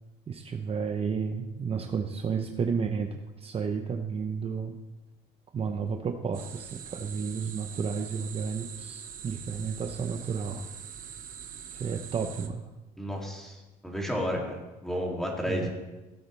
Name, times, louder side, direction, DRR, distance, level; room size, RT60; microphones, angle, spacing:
voice 1, 0.3-4.8 5.5-10.7 11.7-12.6 15.5-15.7, right 6 dB, 35° right, 5 dB, 0.8 m, -32 dB
sound 1, 6.3-12.5, right 8 dB, 55° right, 1.1 m, -43 dB
voice 2, 13.0-13.6 13.8-14.6 14.8-15.7, equal, 5° left, -1 dB, 2.7 m, -31 dB
16.5 x 8.5 x 3.3 m, 1.1 s
cardioid pair, 110°, 17 cm